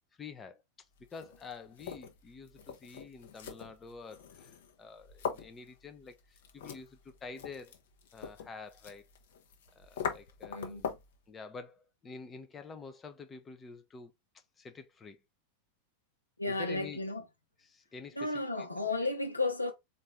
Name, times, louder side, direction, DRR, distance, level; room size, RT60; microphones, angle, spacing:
voice 1, 0.2-0.6 1.1-7.7 8.1-9.0 9.7-11.0 11.3-14.1 14.6-15.2 16.5-17.0 17.7-18.7, left 4 dB, 20° left, 0.6 m, -48 dB
sound 1, 1.0-11.2, left 7 dB, 55° left, 0.8 m, -43 dB
voice 2, 10.5-10.8 16.4-17.2 18.2-19.7, left 2 dB, 85° left, 0.9 m, -33 dB
4.2 x 2.6 x 3.5 m
figure-of-eight pair, 90°, 0 cm